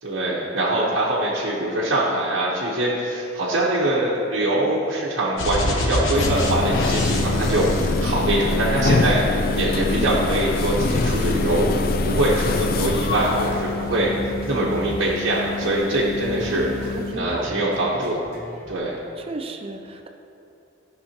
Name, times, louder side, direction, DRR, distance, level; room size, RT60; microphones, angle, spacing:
voice 1, 0.0-9.2 9.5-11.7 12.0-14.1 14.5-16.7 17.2-18.2 18.7-19.0, right 1 dB, 85° right, -7 dB, 1.1 m, -23 dB
sound 1, 5.4-8.7 9.4-10.5 10.7-11.4, left 1 dB, 80° left, 1.0 m, -27 dB
sound 2, 6.1-17.1, left 3 dB, 50° left, 0.4 m, -25 dB
sound 3, 9.6-18.8, right 1 dB, 50° right, 1.1 m, -38 dB
voice 2, 14.1-14.9 16.4-17.6 19.2-20.1, right 2 dB, 30° right, 4 dB, 0.5 m, -36 dB
12.5 x 5.9 x 2.9 m, 2.9 s
head